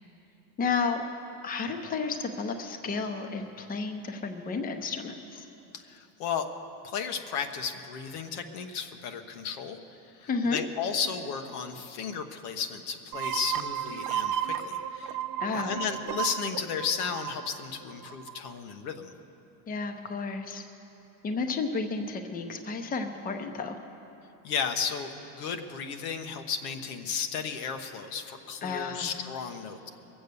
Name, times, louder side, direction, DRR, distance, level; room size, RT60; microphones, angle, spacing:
voice 1, 0.6-1.0 1.4-5.4 10.3-10.6 15.4-15.8 19.7-20.6 21.2-23.8 28.6-29.1, left 4 dB, 20° left, 5 dB, 0.8 m, -32 dB
voice 2, 5.7-6.5 6.8-9.8 10.2-15.2 15.6-19.1 24.4-29.9, left 6 dB, 80° left, 5 dB, 1.3 m, -34 dB
sound 1, 13.1-18.6, right 10 dB, 45° right, 0.6 m, -34 dB
22.0 x 7.8 x 6.8 m, 2.9 s
supercardioid pair, 130°, 45 cm